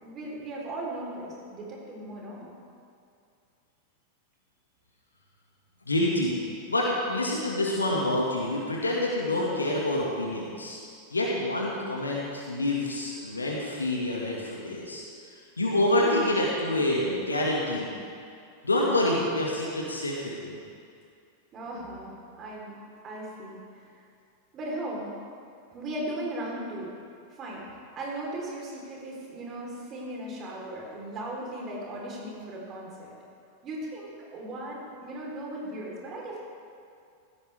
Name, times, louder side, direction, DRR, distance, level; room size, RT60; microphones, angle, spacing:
voice 1, 0.0-2.6 21.5-23.9 24.5-25.1 25.7-26.9 27.3-33.1 33.6-36.4, right 1 dB, 30° right, -3 dB, 3.9 m, -37 dB
voice 2, 5.9-6.4 6.7-10.8 11.1-15.0 15.6-17.9 18.6-20.6, left 1 dB, 80° left, -3 dB, 1.9 m, -27 dB
16.0 x 15.0 x 3.5 m, 2.4 s
figure-of-eight pair, 90°, 0 cm